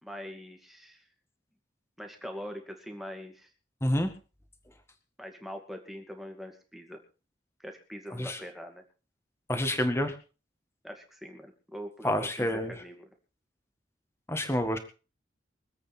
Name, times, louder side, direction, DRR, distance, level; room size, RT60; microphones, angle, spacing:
voice 1, 0.0-1.0 2.0-3.5 5.2-7.0 7.6-8.8 10.8-13.1, equal, ahead, 3 dB, 2.4 m, -43 dB
voice 2, 3.8-4.1 8.1-8.4 9.5-10.2 12.0-12.7 14.3-14.8, left 1 dB, 15° left, 7 dB, 1.8 m, -28 dB
24.5 x 8.5 x 4.4 m, 0.35 s
head